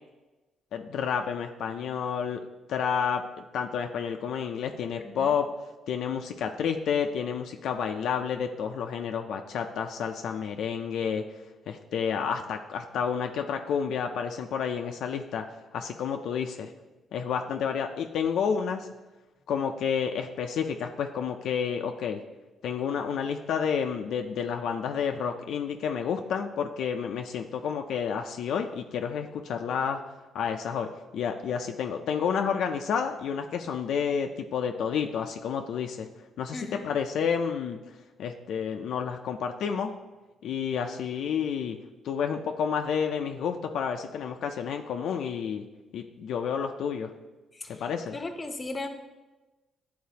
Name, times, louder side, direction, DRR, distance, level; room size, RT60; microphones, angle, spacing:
voice 1, 0.7-2.4 2.7-3.2 3.5-5.5 5.9-11.2 11.7-15.4 15.7-16.7 17.1-18.9 19.5-22.2 22.6-30.0 30.3-36.1 36.4-37.8 38.2-39.9 40.4-41.8 42.0-45.6 45.9-47.1 47.7-48.1, left 7 dB, 75° left, 4 dB, 0.4 m, -30 dB
voice 2, 5.0-5.4 36.5-36.9 47.5-48.9, left 2 dB, 25° left, 6 dB, 0.7 m, -38 dB
9.3 x 3.9 x 2.8 m, 1.1 s
cardioid pair, 90°, 0 cm